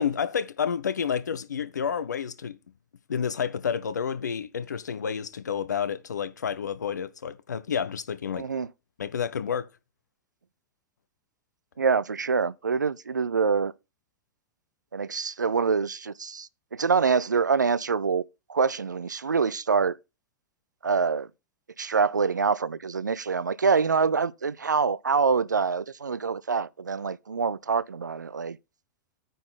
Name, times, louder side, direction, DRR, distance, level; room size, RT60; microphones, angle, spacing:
voice 1, 0.0-2.6 3.1-8.5 9.0-9.7, left 7 dB, 75° left, 0.7 m, -30 dB
voice 2, 8.4-8.7 11.8-13.7 14.9-18.2 18.5-20.0 20.8-21.3 21.8-28.6, right 5 dB, 85° right, 0.4 m, -25 dB
9.2 x 3.9 x 5.6 m
figure-of-eight pair, 95°, 10 cm